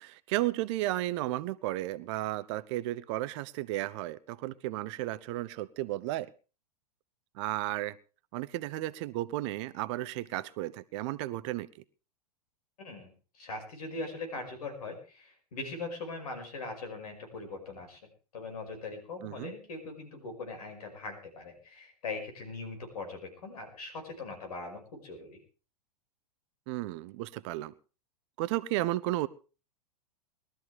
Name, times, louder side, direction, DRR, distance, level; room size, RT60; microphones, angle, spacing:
voice 1, 0.0-6.3 7.4-8.0 8.3-11.7 19.2-19.5 26.7-27.7 28.4-29.3, right 16 dB, 45° right, 17 dB, 0.7 m, -33 dB
voice 2, 12.8-18.0 18.3-25.4, left 3 dB, 70° left, 5 dB, 5.5 m, -41 dB
21.0 x 13.0 x 3.4 m, 0.34 s
hypercardioid pair, 100°, 20 cm